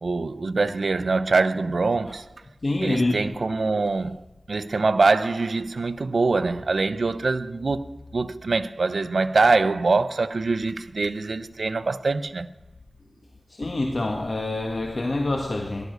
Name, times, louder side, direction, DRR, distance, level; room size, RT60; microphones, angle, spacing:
voice 1, 0.0-2.3 2.8-4.2 4.5-12.5, right 3 dB, 85° right, 0.7 m, -24 dB
voice 2, 2.6-3.4 13.5-15.9, left 2 dB, 65° left, 1.7 m, -26 dB
18.0 x 12.0 x 6.6 m
cardioid pair, 40°, 0 cm